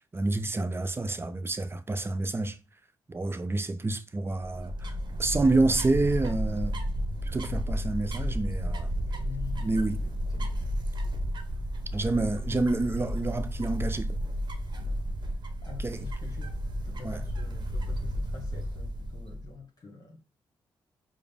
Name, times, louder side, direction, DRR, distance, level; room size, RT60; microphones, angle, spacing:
voice 1, 0.1-2.6 3.1-6.8 7.3-8.9 9.6-10.0 11.9-14.2 15.8-16.1 17.0-17.2, right 2 dB, 25° right, 0.5 m, -28 dB
sound 1, 4.3-19.5, equal, 50° right, 0.9 m, -32 dB
voice 2, 9.0-10.6 11.9-12.6 13.0-13.3 15.6-16.5 16.8-20.2, left 5 dB, 45° left, 1.2 m, -46 dB
4.8 x 2.0 x 3.3 m
cardioid pair, 60°, 9 cm